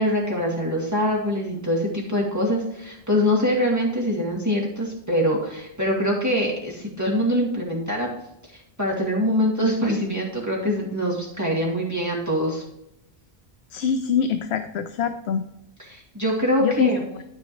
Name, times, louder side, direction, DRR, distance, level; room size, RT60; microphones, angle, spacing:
voice 1, 0.0-8.1 8.5-12.6 15.8-17.0, equal, 15° right, -4 dB, 2.3 m, -24 dB
voice 2, 13.7-15.5 16.6-16.9, left 7 dB, 75° left, 8 dB, 0.9 m, -24 dB
13.0 x 5.2 x 3.1 m, 0.85 s
omnidirectional pair, 1.1 m